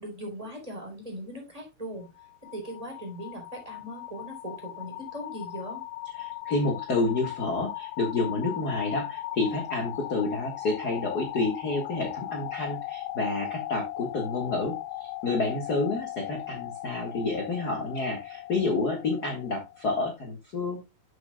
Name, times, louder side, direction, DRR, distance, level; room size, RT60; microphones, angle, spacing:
voice 1, 0.0-2.1 2.5-5.8, equal, 10° right, 1 dB, 3.5 m, -39 dB
sound 1, 2.0-19.9, left 14 dB, 90° left, 1.8 m, -38 dB
voice 2, 6.2-14.7 15.0-20.8, left 3 dB, 55° left, 2 dB, 1.0 m, -29 dB
10.5 x 7.5 x 2.2 m, 0.24 s
omnidirectional pair, 4.6 m